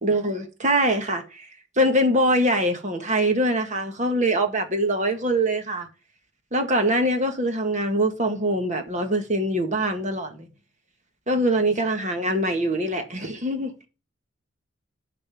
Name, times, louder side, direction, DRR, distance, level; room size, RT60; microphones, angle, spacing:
voice 1, 0.0-1.5 1.8-5.9 6.5-10.5 11.3-13.7, right 1 dB, 40° right, 1.8 m, -23 dB
11.0 x 4.3 x 7.2 m
head